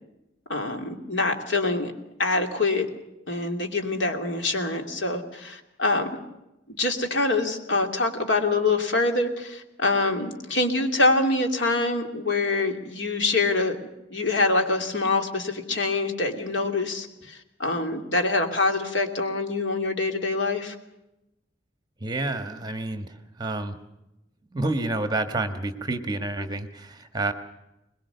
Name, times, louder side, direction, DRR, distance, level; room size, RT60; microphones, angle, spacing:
voice 1, 0.5-1.9 2.2-2.9 3.3-6.1 6.7-13.8 14.1-20.8, left 3 dB, 75° left, 4 dB, 2.7 m, -25 dB
voice 2, 22.0-23.8 24.5-27.3, right 2 dB, 20° right, 8 dB, 1.4 m, -29 dB
22.0 x 21.0 x 6.9 m, 0.92 s
head